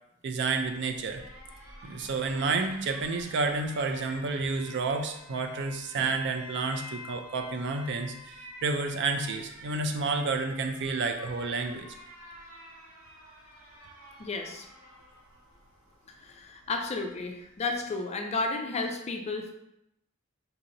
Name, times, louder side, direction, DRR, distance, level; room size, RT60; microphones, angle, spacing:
voice 1, 0.2-1.2 1.8-11.9, right 3 dB, 55° right, 6 dB, 0.4 m, -30 dB
Alarm, 0.6-17.9, left 1 dB, 75° right, 1.0 m, -49 dB
voice 2, 14.2-14.7 16.1-19.5, left 3 dB, 30° left, 4 dB, 0.4 m, -33 dB
4.0 x 2.8 x 2.6 m, 0.82 s
head